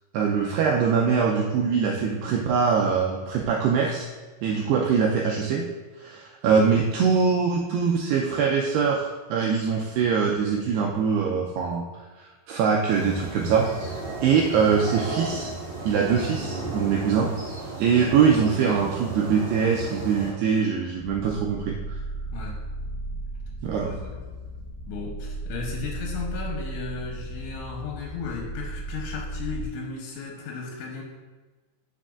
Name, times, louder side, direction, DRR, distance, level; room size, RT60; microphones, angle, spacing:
voice 1, 0.1-4.1 4.4-5.7 6.0-11.8 12.2-13.7 14.2-15.5 15.8-17.3 17.8-21.8 23.6-23.9, right 6 dB, 85° right, 0 dB, 2.3 m, -23 dB
sound 1, 12.9-20.3, right 3 dB, 45° right, 3.2 m, -34 dB
sound 2, 21.0-29.7, right 1 dB, 70° right, 2.7 m, -35 dB
voice 2, 23.8-24.2 24.9-31.0, left 4 dB, 80° left, -1 dB, 3.2 m, -35 dB
10.0 x 6.5 x 2.4 m, 1.3 s
omnidirectional pair, 5.3 m